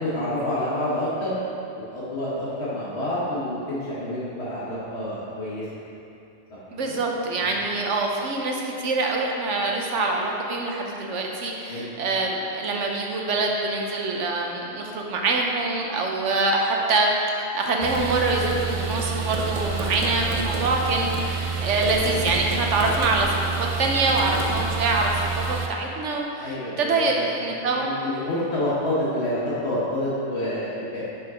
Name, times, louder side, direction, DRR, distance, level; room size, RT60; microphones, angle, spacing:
voice 1, 0.0-1.4 1.9-5.6 6.5-6.6 6.9-7.0 7.4-7.5 11.7-11.9 22.0-22.2 26.4-27.2 27.6-31.0, left 1 dB, 60° left, -10 dB, 1.8 m, -28 dB
voice 2, 6.7-17.1 17.3-27.9, right 3 dB, 80° right, 0 dB, 1.2 m, -25 dB
sound 1, 17.8-25.7, right 5 dB, 45° right, 0.4 m, -28 dB
6.6 x 5.6 x 5.0 m, 2.6 s
omnidirectional pair, 1.2 m